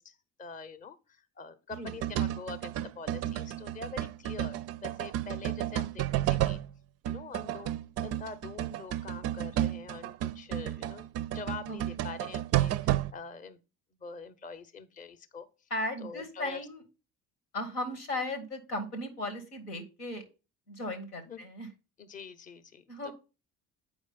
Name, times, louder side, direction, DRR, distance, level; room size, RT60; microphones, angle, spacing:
voice 1, 0.0-6.6 7.0-7.7 8.0-13.6 14.0-15.5 16.0-16.6 21.3-21.4 22.0-23.1, left 4 dB, 20° left, 13 dB, 0.7 m, -45 dB
sound 1, 1.7-6.7 7.1-13.1, right 13 dB, 35° right, 0.4 m, -32 dB
voice 2, 15.7-16.8 17.5-20.2 20.7-21.7 22.9-23.1, left 1 dB, 85° left, 8 dB, 1.3 m, -36 dB
7.9 x 4.9 x 4.1 m, 0.31 s
figure-of-eight pair, 55°, 45 cm